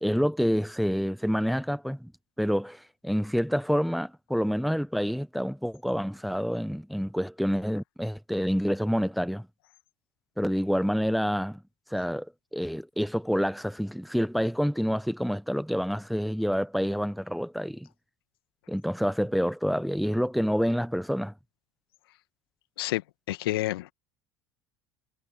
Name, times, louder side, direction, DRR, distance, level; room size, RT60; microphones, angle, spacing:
voice 1, 0.0-2.1 2.4-9.5 10.4-11.6 11.9-12.3 12.5-17.9 18.7-21.3, equal, ahead, 1.1 m, -28 dB
voice 2, 22.8-23.9, left 17 dB, 70° left, 1.9 m, -30 dB
figure-of-eight pair, 65°, 13 cm